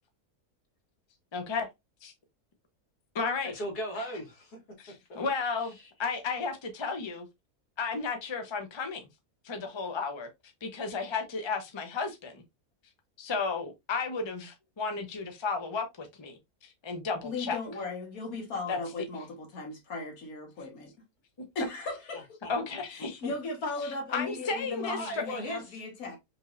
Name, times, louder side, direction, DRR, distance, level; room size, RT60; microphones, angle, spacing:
voice 1, 1.3-1.7 2.0-2.1 3.1-3.5 4.8-7.3 7.8-9.1 9.4-10.3 10.6-12.4 13.2-17.6 18.7-18.8 22.5-23.3 24.1-25.2, left 4 dB, 25° left, 0.7 m, -33 dB
voice 2, 3.4-4.6 5.8-5.9 22.4-22.5 23.0-23.1 24.9-25.8, equal, 90° left, 2.1 m, -37 dB
voice 3, 17.2-20.9 21.5-22.4 23.2-26.2, left 3 dB, 70° left, 1.7 m, -37 dB
5.2 x 3.3 x 2.5 m
omnidirectional pair, 1.6 m